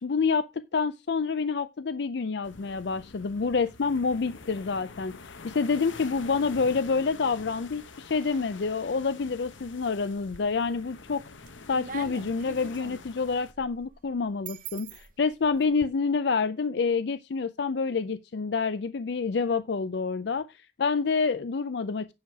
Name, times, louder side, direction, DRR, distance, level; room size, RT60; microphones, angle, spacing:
voice 1, 0.0-11.2 11.7-22.1, left 4 dB, 60° left, 0.5 m, -28 dB
sound 1, 2.4-13.5, left 4 dB, 85° left, 1.0 m, -46 dB
sound 2, 10.1-10.8 11.2-15.9, right 5 dB, 45° right, 1.0 m, -44 dB
9.4 x 6.3 x 4.7 m
head